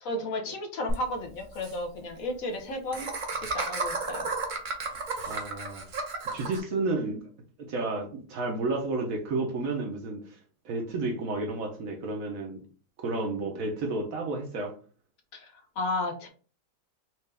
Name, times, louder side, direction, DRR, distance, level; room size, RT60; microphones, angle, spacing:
voice 1, 0.0-3.1 3.3-4.3 15.3-16.3, left 1 dB, 65° left, 3 dB, 1.1 m, -33 dB
Laughter, 0.9-1.0 1.2-1.3 1.5-1.7 2.9-6.6, right 3 dB, 50° right, 0.6 m, -32 dB
voice 2, 5.3-5.8 6.3-7.3 7.7-10.4 10.6-12.6 13.0-14.7, right 3 dB, 65° right, 3 dB, 1.0 m, -31 dB
4.4 x 2.4 x 3.3 m, 0.39 s
omnidirectional pair, 1.7 m